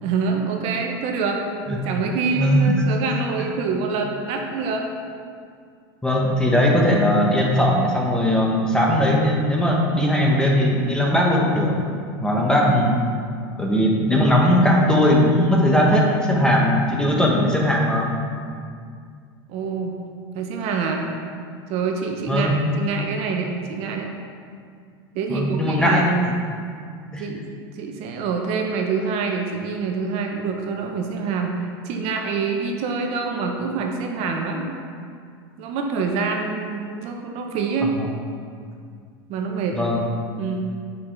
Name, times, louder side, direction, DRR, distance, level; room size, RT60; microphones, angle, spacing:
voice 1, 0.0-4.8 19.5-20.0 20.3-21.1 21.7-22.5 22.8-24.1 25.1-26.3 27.2-27.5 27.7-34.7 35.6-37.9 39.3-39.8 40.4-40.7, right 5 dB, 55° right, 2 dB, 0.8 m, -26 dB
voice 2, 2.4-2.7 6.0-11.7 12.2-13.0 13.6-18.1 22.3-22.5 25.3-26.0 27.1-27.2 39.7-40.0, equal, 5° left, -2 dB, 1.1 m, -19 dB
6.8 x 5.5 x 3.3 m, 2.2 s
supercardioid pair, 105°, 13 cm